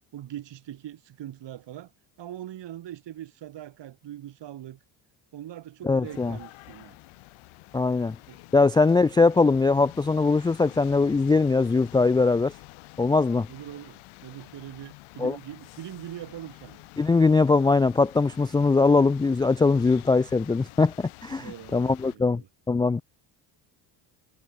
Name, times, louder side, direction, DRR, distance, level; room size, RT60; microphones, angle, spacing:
voice 1, 0.1-1.9 2.2-4.8 5.3-7.0 8.3-9.0 13.5-16.8 21.4-22.5, right 12 dB, 60° right, 6.1 m, -42 dB
voice 2, 5.8-6.4 7.7-8.2 8.5-12.5 13.0-13.5 15.2-15.4 17.0-22.4 22.7-23.0, left 3 dB, 10° left, 0.3 m, -21 dB
sound 1, 6.0-22.1, left 25 dB, 85° left, 1.9 m, -48 dB
supercardioid pair, 90°, 48 cm